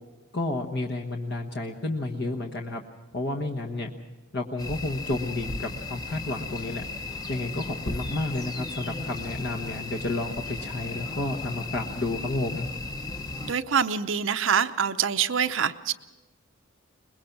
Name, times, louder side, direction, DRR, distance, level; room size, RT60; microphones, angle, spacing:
voice 1, 0.3-2.8 3.1-3.9 4.3-6.8 7.3-12.7, left 2 dB, 55° left, 2 dB, 1.3 m, -31 dB
sound 1, 4.6-13.5, left 3 dB, 20° left, 0.8 m, -36 dB
voice 2, 13.4-15.9, right 7 dB, 70° right, 9 dB, 0.7 m, -25 dB
23.0 x 21.0 x 6.0 m, 1.2 s
head